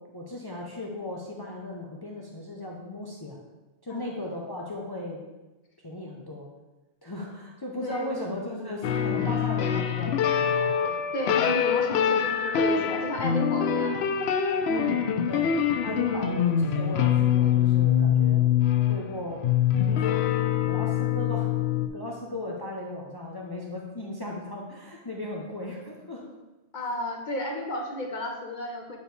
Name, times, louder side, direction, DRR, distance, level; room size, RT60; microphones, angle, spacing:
voice 1, 0.1-3.4 3.8-5.2 5.8-6.5 7.0-11.1 14.7-15.5 15.8-18.5 18.9-19.5 19.8-20.2 20.6-21.5 21.9-26.2, left 1 dB, 25° left, -2 dB, 0.7 m, -37 dB
voice 2, 3.9-4.2 7.8-8.2 10.9-14.0 16.1-16.5 26.7-29.0, left 1 dB, 50° left, 2 dB, 0.9 m, -33 dB
sound 1, 8.8-21.9, left 8 dB, 75° left, 0.8 m, -24 dB
8.2 x 4.9 x 3.2 m, 1.1 s
omnidirectional pair, 1.1 m